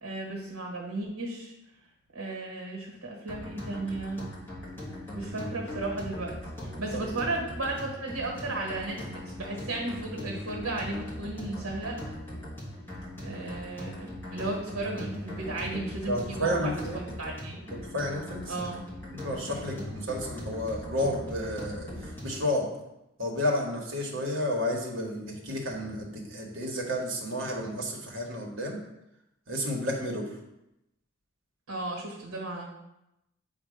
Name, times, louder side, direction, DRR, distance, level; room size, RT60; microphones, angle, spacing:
voice 1, 0.0-1.5 2.1-4.2 5.1-12.1 13.2-16.8 17.2-17.6 18.5-18.8 19.7-19.8 31.7-32.7, right 2 dB, 80° right, -1 dB, 1.5 m, -35 dB
sound 1, 3.3-22.5, left 1 dB, 10° left, 1.3 m, -40 dB
voice 2, 16.1-17.0 17.7-18.6 19.1-22.7 23.2-28.8 29.5-30.3, left 1 dB, 60° right, -1 dB, 1.3 m, -31 dB
7.5 x 2.5 x 5.0 m, 0.88 s
head